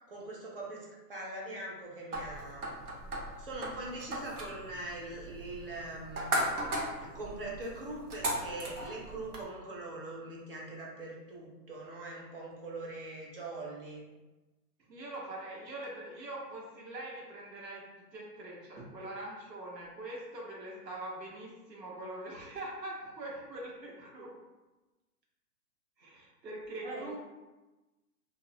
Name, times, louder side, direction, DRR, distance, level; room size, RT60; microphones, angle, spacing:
voice 1, 0.1-2.7 3.4-6.4 7.0-14.0 26.8-27.2, right 2 dB, 35° right, -4 dB, 0.5 m, -42 dB
sound 1, 2.1-9.4, right 1 dB, 65° right, 0.8 m, -37 dB
voice 2, 14.9-17.8 18.1-24.3 26.0-27.2, right 1 dB, 80° right, -4 dB, 1.1 m, -43 dB
2.3 x 2.0 x 2.7 m, 1.1 s
hypercardioid pair, 150°, 49 cm